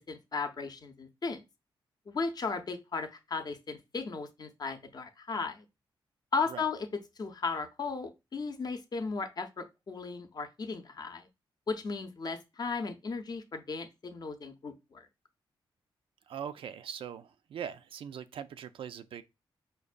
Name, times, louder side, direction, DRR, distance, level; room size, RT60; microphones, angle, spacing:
voice 1, 0.1-1.4 2.1-5.6 6.3-6.9 7.2-11.3 11.7-15.1, left 4 dB, 45° left, 0.6 m, -36 dB
voice 2, 16.3-19.2, right 8 dB, 75° right, 0.3 m, -41 dB
5.1 x 2.2 x 2.4 m
cardioid pair, 80°, 9 cm